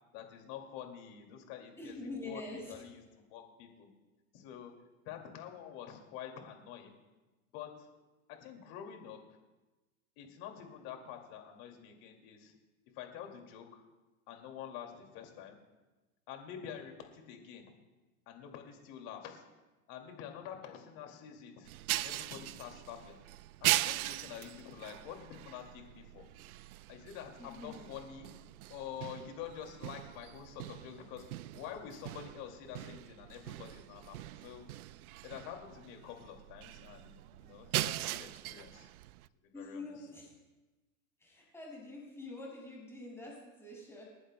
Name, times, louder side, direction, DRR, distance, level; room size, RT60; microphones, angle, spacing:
voice 1, 0.1-3.9 4.3-4.7 5.1-7.0 7.5-7.9 8.3-9.2 10.2-12.5 12.9-13.8 14.3-15.6 16.3-17.6 18.3-19.4 19.9-21.7 22.0-23.2 23.6-26.3 26.9-28.3 28.7-31.2 31.5-34.6 35.2-38.9 39.4-39.8, left 9 dB, 40° left, 3 dB, 2.3 m, -47 dB
voice 2, 1.8-2.8 27.4-27.9 39.5-40.3 41.2-44.0, left 2 dB, 5° left, -5 dB, 5.7 m, -45 dB
sound 1, 21.7-39.3, right 16 dB, 75° right, 0.5 m, -40 dB
28.5 x 11.0 x 2.2 m, 1.1 s
supercardioid pair, 150°, 43 cm